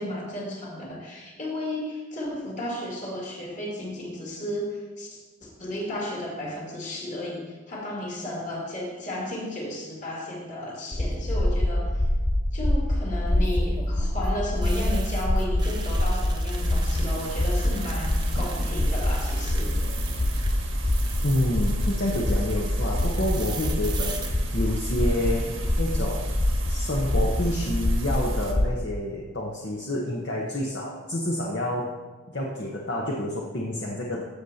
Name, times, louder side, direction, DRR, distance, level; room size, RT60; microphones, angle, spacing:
voice 1, 0.0-12.0 12.5-19.8, left 1 dB, 40° left, -3 dB, 2.3 m, -33 dB
sound 1, 10.9-28.8, left 1 dB, 15° left, 0.4 m, -25 dB
sound 2, 10.9-11.4 13.3-20.5 20.8-22.5 23.0-24.3, right 5 dB, 20° right, 0.8 m, -41 dB
sound 3, 16.5-28.5, right 4 dB, 80° right, 1.5 m, -40 dB
voice 2, 21.2-25.5 25.8-26.3 26.7-31.9 32.3-34.2, left 1 dB, 55° left, -3 dB, 1.0 m, -28 dB
14.5 x 6.5 x 2.8 m, 1.4 s
head